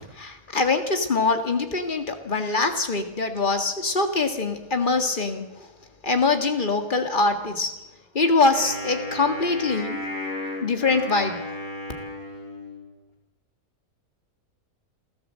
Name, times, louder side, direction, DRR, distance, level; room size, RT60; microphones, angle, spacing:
voice 1, 0.1-5.7 6.0-7.8 8.1-10.0 10.6-11.4, left 3 dB, 35° left, 6 dB, 2.0 m, -23 dB
Wind instrument woodwind instrument, 8.5-12.9, equal, 65° left, 4.4 m, -34 dB
28.5 x 13.5 x 7.6 m, 1.0 s
omnidirectional pair, 1.6 m